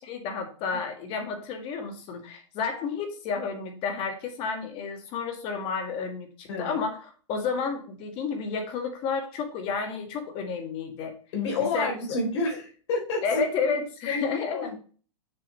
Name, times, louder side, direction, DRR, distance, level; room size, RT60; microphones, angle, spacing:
voice 1, 0.0-11.1 11.6-11.9 13.2-14.7, left 5 dB, 35° left, 5 dB, 1.7 m, -31 dB
voice 2, 11.3-13.5 14.1-14.2 14.5-14.8, left 2 dB, 60° left, 0 dB, 3.4 m, -29 dB
6.9 x 6.9 x 3.2 m, 0.40 s
supercardioid pair, 150°, 16 cm